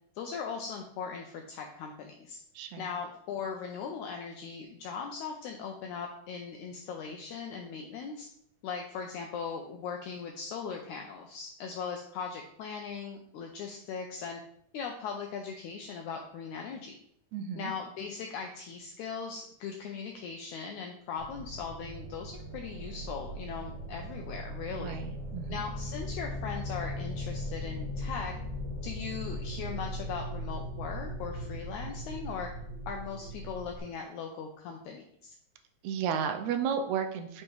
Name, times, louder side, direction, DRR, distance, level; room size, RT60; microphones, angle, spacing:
voice 1, 0.2-2.4 2.8-8.3 8.6-14.4 14.7-17.0 17.6-25.0 25.5-28.3 28.8-32.5 32.9-35.3, left 6 dB, 75° left, 2 dB, 1.8 m, -39 dB
voice 2, 2.6-2.9 17.3-17.7 24.7-25.7 35.8-37.4, right 7 dB, 80° right, 6 dB, 1.7 m, -33 dB
sound 1, 21.2-33.8, equal, 25° right, 1.1 m, -39 dB
6.7 x 5.5 x 3.1 m, 0.70 s
omnidirectional pair, 3.8 m